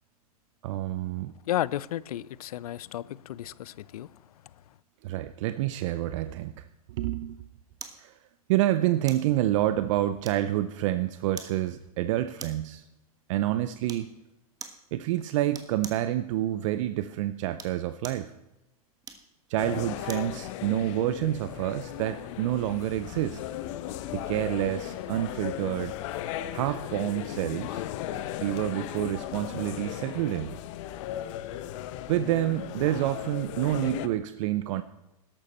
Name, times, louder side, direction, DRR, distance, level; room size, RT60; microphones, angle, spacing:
voice 1, 0.6-1.3 5.0-6.5 6.9-7.4 7.9-8.1 8.5-12.8 13.3-14.1 14.9-18.3 19.5-23.4 24.1-25.9 26.5-27.8 28.4-30.5 32.1-34.8, right 14 dB, 55° right, 0.6 m, -28 dB
voice 2, 1.5-4.1, left 13 dB, 75° left, 0.5 m, -33 dB
sound 1, 7.8-8.0 9.1-9.3 10.2-10.7 11.4-11.6 12.4-12.7 13.9-14.1 14.6-14.8 15.5-16.1 17.4-18.3 19.0-20.3 20.8-20.9, right 6 dB, 20° right, 1.3 m, -43 dB
sound 2, 19.6-34.1, left 12 dB, 55° left, 0.9 m, -36 dB
13.5 x 11.5 x 4.3 m
hypercardioid pair, 125°, 19 cm